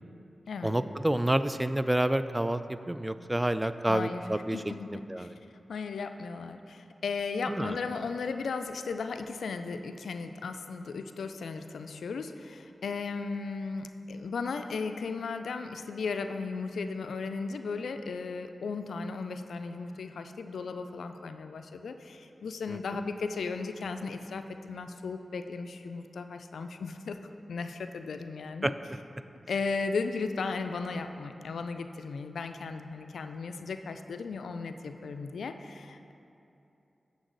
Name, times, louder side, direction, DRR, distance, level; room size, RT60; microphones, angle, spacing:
voice 1, 0.6-4.6 4.9-5.4 7.5-7.7 22.7-22.8 28.6-28.7, right 1 dB, 15° right, 12 dB, 0.3 m, -29 dB
voice 2, 3.9-4.9 5.2-5.3 5.7-27.2 27.5-28.7 29.5-36.1, left 4 dB, 90° left, 8 dB, 0.3 m, -36 dB
8.0 x 6.8 x 3.9 m, 2.8 s
cardioid pair, 45°, 0 cm